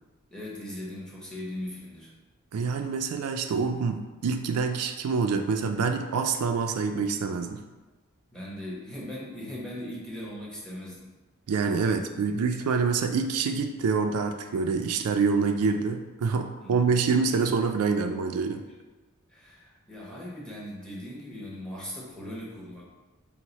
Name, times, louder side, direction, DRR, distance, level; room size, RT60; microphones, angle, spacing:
voice 1, 0.3-2.1 8.3-11.1 16.6-17.0 19.3-22.8, left 1 dB, 5° left, -5 dB, 0.9 m, -39 dB
voice 2, 2.5-7.6 11.5-18.6, right 5 dB, 85° right, 6 dB, 0.4 m, -26 dB
4.6 x 2.1 x 4.0 m, 1.2 s
head